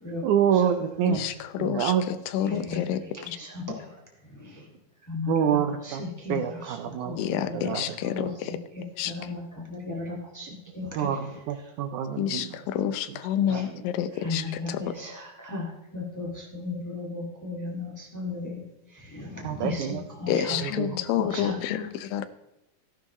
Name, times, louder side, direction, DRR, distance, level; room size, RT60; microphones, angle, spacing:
voice 1, 0.2-1.3 1.6-2.1 2.5-2.7 5.3-6.0 6.3-7.2 7.5-8.0 11.0-12.6 13.1-13.2 13.5-13.9 19.4-21.0, right 9 dB, 85° right, 7 dB, 1.7 m, -27 dB
voice 2, 1.6-1.9 2.3-3.0 7.2-8.5 9.0-9.1 12.2-14.9 20.3-22.3, left 10 dB, 75° left, 11 dB, 2.4 m, -29 dB
voice 3, 2.4-3.9 4.3-4.6 5.1-5.6 5.8-6.4 7.0-7.8 8.0-11.0 13.5-13.7 14.1-21.9, left 3 dB, 20° left, -1 dB, 0.5 m, -36 dB
14.0 x 11.5 x 3.1 m, 1.0 s
omnidirectional pair, 4.3 m